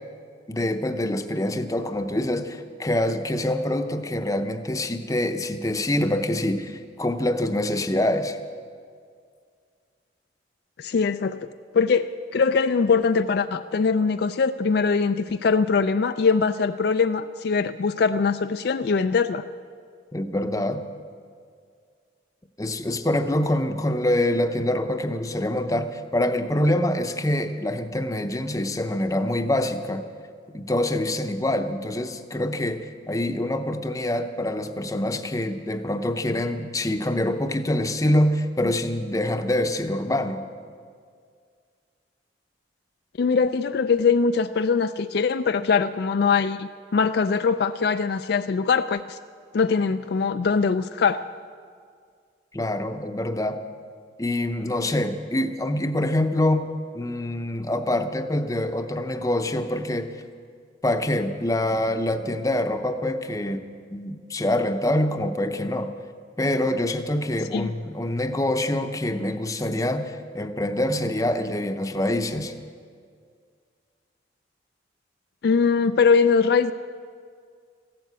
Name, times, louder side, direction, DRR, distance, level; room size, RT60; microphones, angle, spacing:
voice 1, 0.5-8.4 20.1-20.8 22.6-30.0 30.5-40.4 52.5-53.6 54.2-56.7 56.9-60.1 60.8-63.6 63.9-65.9 66.4-72.5, left 1 dB, 15° left, 8 dB, 0.7 m, -25 dB
voice 2, 10.8-11.5 11.7-19.4 43.2-49.2 49.5-51.2 67.5-67.7 75.4-76.7, left 5 dB, 55° left, 9 dB, 0.3 m, -22 dB
15.0 x 12.0 x 8.1 m, 2.1 s
head